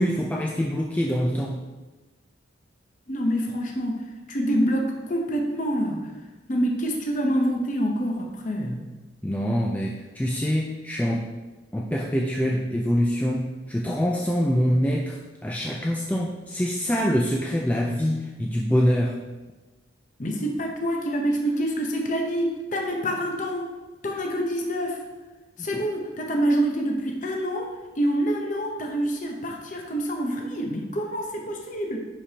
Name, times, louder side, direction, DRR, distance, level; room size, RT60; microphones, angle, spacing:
voice 1, 0.0-1.6 9.2-11.3 11.7-19.2 25.6-25.8, equal, 10° left, -1 dB, 0.4 m, -25 dB
voice 2, 3.1-4.0 4.3-6.1 6.5-8.8 20.2-23.7 24.0-25.0 25.6-27.7 28.0-32.0, equal, 40° left, 1 dB, 0.8 m, -26 dB
10.0 x 5.0 x 2.9 m, 1.2 s
head